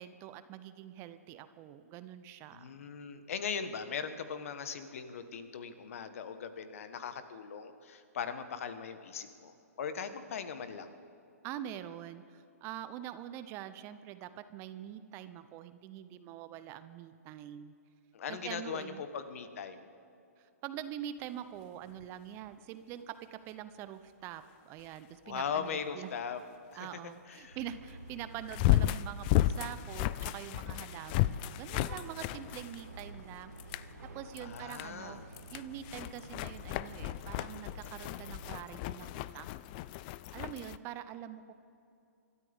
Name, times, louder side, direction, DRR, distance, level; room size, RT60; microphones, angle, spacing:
voice 1, 0.0-2.8 11.4-17.7 18.3-19.1 20.4-26.1 26.7-33.5 34.1-39.5 40.3-41.5, right 11 dB, 30° right, 12 dB, 0.7 m, -45 dB
voice 2, 2.5-10.9 18.1-19.8 25.2-26.4 26.7-26.9 27.3-27.6 34.4-35.2 40.4-40.6, left 6 dB, 60° left, 10 dB, 1.4 m, -39 dB
sound 1, 22.0-22.1 28.5-33.2 33.6-33.9 34.4-34.9 35.3-40.8, left 15 dB, 35° left, 0.4 m, -33 dB
sound 2, 27.4-38.6, right 1 dB, 90° right, 2.2 m, -50 dB
28.0 x 13.0 x 3.6 m, 2.6 s
figure-of-eight pair, 125°, 9 cm